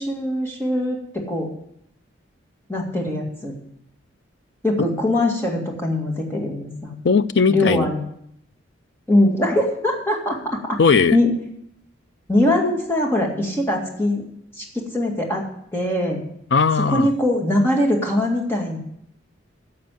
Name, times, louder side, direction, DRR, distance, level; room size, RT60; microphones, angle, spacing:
voice 1, 0.0-1.5 2.7-3.5 4.6-7.0 7.5-8.0 9.1-10.8 11.1-11.3 12.3-14.2 14.6-15.4 15.7-16.2 16.9-18.8, left 1 dB, 10° left, -1 dB, 2.1 m, -22 dB
voice 2, 7.0-7.9 10.8-11.2 16.5-17.1, left 5 dB, 60° left, 14 dB, 0.5 m, -18 dB
10.5 x 6.7 x 7.6 m, 0.72 s
head